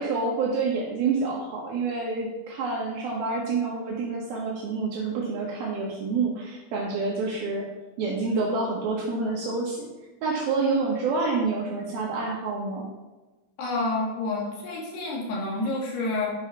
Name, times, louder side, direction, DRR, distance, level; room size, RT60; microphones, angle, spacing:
voice 1, 0.0-7.6 8.0-9.8 10.2-12.8, right 4 dB, 70° right, -3 dB, 3.1 m, -28 dB
voice 2, 13.6-16.3, left 2 dB, 90° left, -3 dB, 4.5 m, -29 dB
10.5 x 5.6 x 5.8 m, 1.2 s
omnidirectional pair, 4.6 m